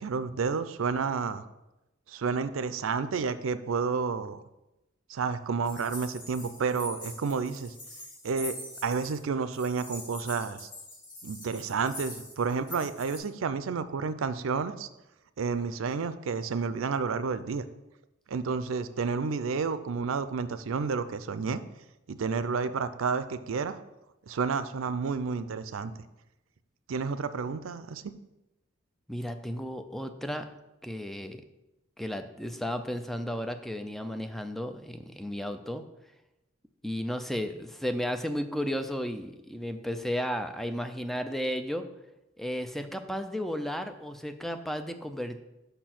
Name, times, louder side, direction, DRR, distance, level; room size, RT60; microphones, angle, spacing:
voice 1, 0.0-1.5 2.1-4.4 5.1-7.7 8.2-8.6 8.8-10.7 11.2-14.9 15.4-17.6 18.3-21.6 22.1-23.8 24.3-25.9 26.9-28.0, right 5 dB, 80° right, 12 dB, 0.5 m, -30 dB
sound 1, 5.6-9.2 9.5-13.2, left 1 dB, 40° left, 2.8 m, -44 dB
voice 2, 29.1-30.5 30.8-31.4 32.0-35.8 36.8-41.8 42.4-45.4, equal, ahead, 8 dB, 0.4 m, -33 dB
5.5 x 4.4 x 5.9 m, 0.95 s
head